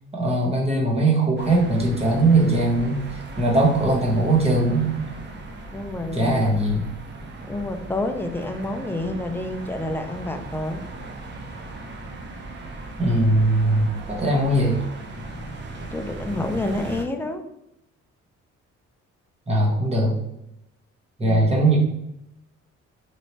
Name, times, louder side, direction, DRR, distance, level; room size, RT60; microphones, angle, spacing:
voice 1, 0.1-5.0 6.1-6.9 13.0-14.8 19.5-20.2 21.2-21.8, right 2 dB, 20° right, -2 dB, 1.1 m, -20 dB
sound 1, 1.4-17.0, right 2 dB, 35° right, 0.6 m, -37 dB
voice 2, 5.7-6.4 7.5-10.8 15.9-17.4 21.2-21.6, left 2 dB, 10° left, 5 dB, 0.3 m, -29 dB
3.2 x 2.8 x 2.8 m, 0.83 s
cardioid pair, 90°, 30 cm